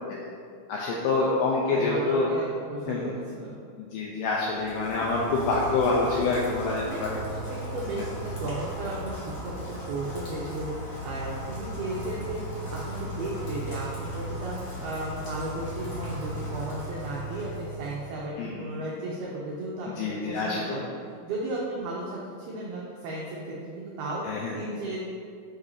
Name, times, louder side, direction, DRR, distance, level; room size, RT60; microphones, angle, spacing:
voice 1, 0.7-2.3 2.9-3.1 3.8-7.2 18.4-18.7 20.0-20.8 24.2-24.6, left 3 dB, 85° left, -4 dB, 2.4 m, -26 dB
voice 2, 1.5-3.6 6.8-7.0 7.5-10.8 11.0-24.2 24.5-25.0, right 2 dB, 90° right, -5 dB, 2.2 m, -35 dB
Rain, 4.4-18.3, right 1 dB, 55° left, 1.9 m, -37 dB
9.9 x 5.7 x 2.7 m, 2.2 s
omnidirectional pair, 5.5 m